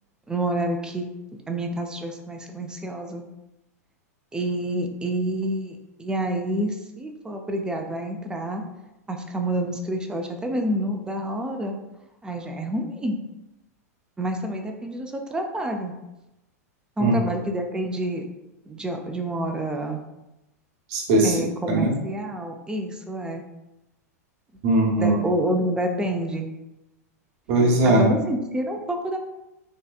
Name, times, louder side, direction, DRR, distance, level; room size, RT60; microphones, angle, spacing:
voice 1, 0.3-1.1 1.3-3.2 4.3-8.6 9.1-11.8 12.2-13.2 14.2-15.9 17.0-18.3 18.7-20.0 21.2-23.4 24.9-26.5 27.8-29.2, right 1 dB, 10° right, 3 dB, 0.4 m, -28 dB
voice 2, 20.9-21.4 21.7-21.9 24.6-25.2 27.5-28.2, right 1 dB, 55° right, -1 dB, 0.9 m, -19 dB
3.1 x 2.8 x 2.3 m, 0.95 s
hypercardioid pair, 105°, 9 cm